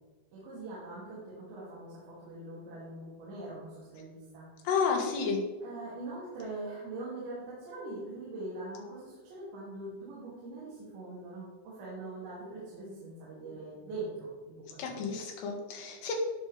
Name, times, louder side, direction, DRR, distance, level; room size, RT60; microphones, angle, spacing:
voice 1, 0.3-4.5 5.6-15.0, right 2 dB, 85° right, -8 dB, 5.0 m, -42 dB
voice 2, 4.7-5.4 14.8-16.1, left 5 dB, 75° left, 1 dB, 3.7 m, -31 dB
17.5 x 6.4 x 3.4 m, 1.3 s
omnidirectional pair, 4.9 m